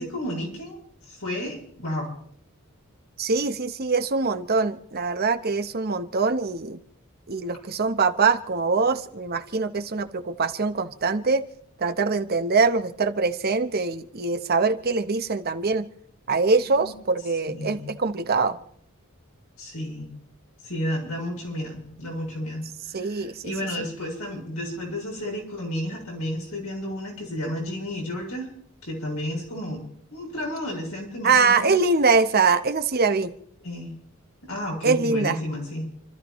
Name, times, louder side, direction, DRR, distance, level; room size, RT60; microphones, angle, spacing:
voice 1, 0.0-2.1 16.7-16.9 17.5-17.9 19.6-20.1 20.6-28.5 28.8-31.8 33.6-34.0 34.4-35.9, left 1 dB, 80° left, 0 dB, 7.5 m, -32 dB
voice 2, 3.2-6.8 7.3-11.5 11.8-15.9 16.3-18.6 22.9-23.5 23.8-23.9 31.2-33.3 34.8-35.4, right 4 dB, 45° right, 9 dB, 0.9 m, -23 dB
28.5 x 13.5 x 3.1 m, 0.62 s
head